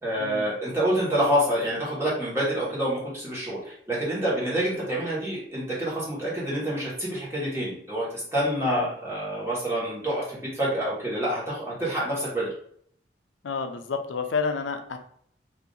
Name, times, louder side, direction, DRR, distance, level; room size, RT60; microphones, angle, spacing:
voice 1, 0.0-12.5, right 1 dB, 15° right, -7 dB, 1.3 m, -27 dB
voice 2, 13.4-15.0, left 4 dB, 85° left, 7 dB, 0.4 m, -30 dB
2.7 x 2.5 x 3.8 m, 0.64 s
head